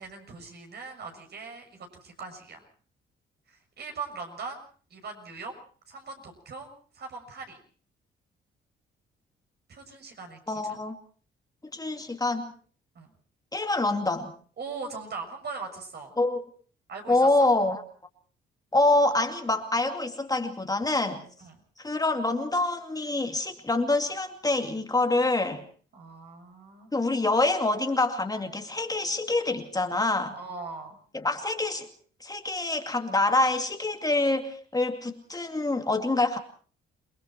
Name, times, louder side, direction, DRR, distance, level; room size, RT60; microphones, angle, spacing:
voice 1, 0.0-2.6 3.5-4.6 4.9-5.5 5.9-6.7 6.9-7.6 9.7-10.7 12.9-13.1 14.6-16.1 16.9-17.5 21.4-21.6 25.9-26.9 30.3-31.0, right 4 dB, 55° right, 4 dB, 6.6 m, -40 dB
voice 2, 10.5-11.0 11.7-12.5 13.5-14.3 16.2-16.4 17.1-17.8 18.7-21.2 21.8-25.6 26.9-30.3 31.1-31.9 32.2-36.4, left 2 dB, 20° left, 5 dB, 2.4 m, -26 dB
28.5 x 20.0 x 4.5 m, 0.43 s
cardioid pair, 90°, 20 cm